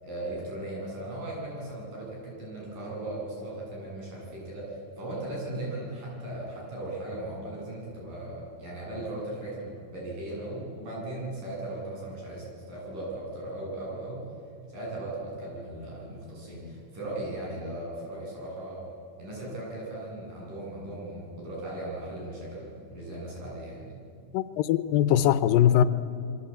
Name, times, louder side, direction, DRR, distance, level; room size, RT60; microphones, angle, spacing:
voice 1, 0.0-14.2 14.7-18.8 19.2-24.0, right 1 dB, 65° right, -3 dB, 9.8 m, -37 dB
voice 2, 24.3-25.8, left 11 dB, 80° left, 12 dB, 2.5 m, -21 dB
28.0 x 22.5 x 9.0 m, 2.5 s
omnidirectional pair, 4.1 m